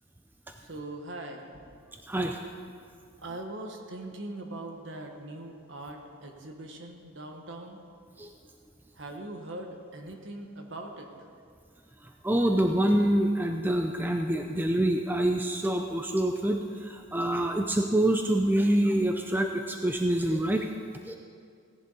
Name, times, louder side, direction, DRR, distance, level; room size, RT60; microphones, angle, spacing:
voice 1, 0.6-1.6 3.2-7.8 8.9-11.1, right 1 dB, 60° right, 3 dB, 1.4 m, -41 dB
voice 2, 2.1-2.4 8.2-8.3 12.2-20.7 21.1-21.2, right 1 dB, 10° right, 3 dB, 0.4 m, -26 dB
17.0 x 11.0 x 4.1 m, 2.3 s
head